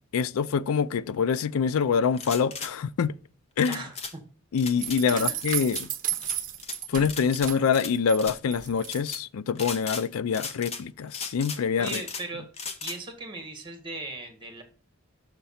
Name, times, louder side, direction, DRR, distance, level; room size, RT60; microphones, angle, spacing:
voice 1, 0.1-3.1 3.6-3.8 4.5-5.9 6.9-12.0, left 6 dB, 85° left, 0.4 m, -25 dB
sound 1, 2.1-2.7 3.6-4.1 4.6-5.0 5.4-5.9 6.2-6.8 7.1-7.9 8.2-8.4 8.8-9.2 9.6-10.1 10.3-10.8 11.1-12.3 12.5-13.0, left 5 dB, 30° left, 0.8 m, -37 dB
sound 2, 4.8-8.2 8.5-9.2, right 11 dB, 40° right, 0.9 m, -33 dB
voice 2, 5.1-5.4 11.8-12.5 12.8-14.6, right 2 dB, 25° right, 1.7 m, -38 dB
6.6 x 5.7 x 4.2 m
head